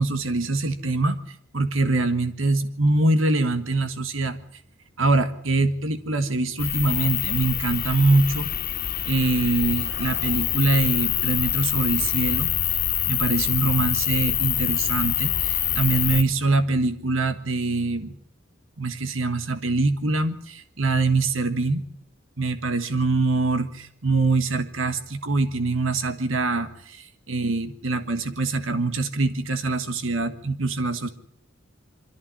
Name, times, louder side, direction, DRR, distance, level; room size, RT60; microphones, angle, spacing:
voice 1, 0.0-4.4 5.0-8.5 9.1-12.5 13.1-18.2 18.8-21.8 22.4-31.1, right 3 dB, 85° right, 10 dB, 1.6 m, -24 dB
sound 1, 6.6-16.2, left 11 dB, 50° left, 1.8 m, -25 dB
24.5 x 14.5 x 9.9 m, 0.66 s
head